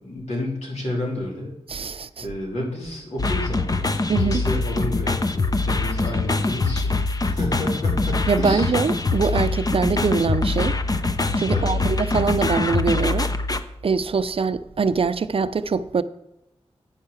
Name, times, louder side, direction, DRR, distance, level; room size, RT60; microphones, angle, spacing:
voice 1, 0.0-1.5 2.2-8.7 11.5-11.7, left 1 dB, 85° left, 3.3 m, -30 dB
voice 2, 1.7-2.3 4.1-4.4 8.3-10.8 11.4-13.3 13.8-16.0, right 5 dB, 60° right, 0.5 m, -23 dB
sound 1, 3.2-13.6, left 3 dB, 35° left, 0.7 m, -23 dB
9.0 x 5.7 x 7.0 m
wide cardioid pair, 80°, 11 cm